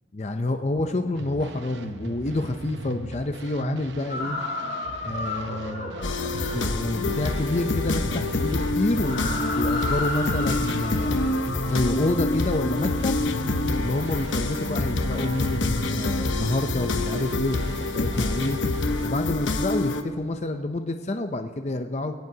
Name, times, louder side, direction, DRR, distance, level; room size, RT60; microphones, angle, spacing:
voice 1, 0.1-4.4 5.0-5.9 6.5-11.2 11.6-13.2 13.8-18.6 19.0-22.1, left 2 dB, 35° left, 6 dB, 0.5 m, -28 dB
sound 1, 1.1-19.1, right 3 dB, 70° right, 0.7 m, -39 dB
sound 2, 4.1-6.6 8.9-11.8, left 2 dB, 60° left, 4.6 m, -32 dB
sound 3, 6.0-20.0, left 2 dB, 85° left, 1.0 m, -26 dB
21.5 x 17.5 x 2.8 m, 2.1 s
head